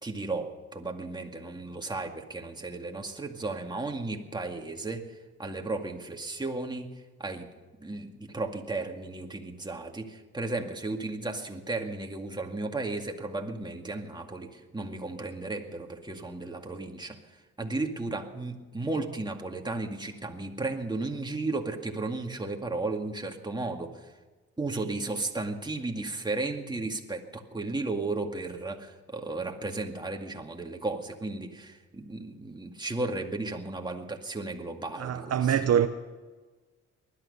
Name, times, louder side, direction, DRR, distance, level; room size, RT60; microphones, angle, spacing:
voice 1, 0.0-6.9 7.2-7.5 7.8-24.1 24.6-35.5, right 2 dB, 15° right, 2.1 m, -34 dB
voice 2, 35.0-35.9, right 9 dB, 55° right, 0.8 m, -24 dB
20.0 x 12.0 x 5.5 m
cardioid pair, 90°, 30 cm